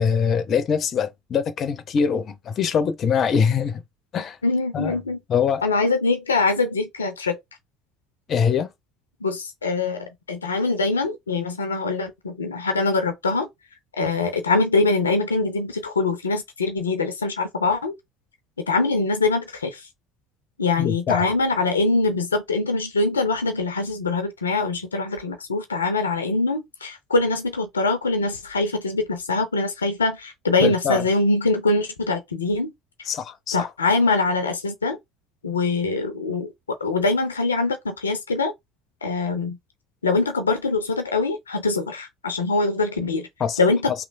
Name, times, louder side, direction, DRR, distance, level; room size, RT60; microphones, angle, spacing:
voice 1, 0.0-3.8 4.1-4.4 4.7-4.9 5.3-5.6 8.3-8.7 20.8-21.3 30.6-31.0 33.1-33.7 43.4-43.6, left 6 dB, 45° left, 0.6 m, -23 dB
voice 2, 4.4-5.2 5.6-7.4 9.2-13.5 14.0-17.9 18.7-19.9 20.6-32.7 33.5-35.0 35.4-36.5 36.8-38.5 39.0-39.6 40.0-43.3 43.6-43.9, left 3 dB, 90° left, 0.5 m, -23 dB
3.1 x 2.8 x 2.5 m
hypercardioid pair, 65°, 0 cm